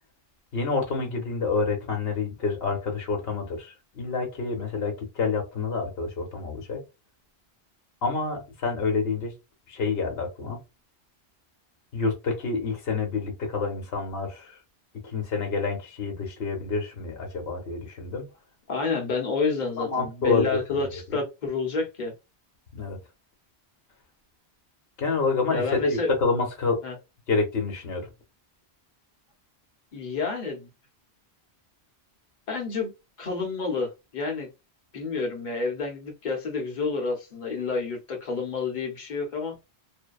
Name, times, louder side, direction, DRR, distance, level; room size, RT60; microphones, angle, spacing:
voice 1, 0.5-6.8 8.0-9.3 9.7-10.6 11.9-14.6 15.0-18.3 19.8-20.8 21.1-21.2 22.7-23.0 25.0-26.8 27.3-28.1, left 4 dB, 70° left, 1.1 m, -28 dB
voice 2, 18.7-22.1 25.5-26.1 26.8-26.9 29.9-30.7 32.5-32.9 33.2-34.5 34.9-39.6, left 4 dB, 50° left, 0.9 m, -29 dB
2.6 x 2.1 x 2.3 m
omnidirectional pair, 1.1 m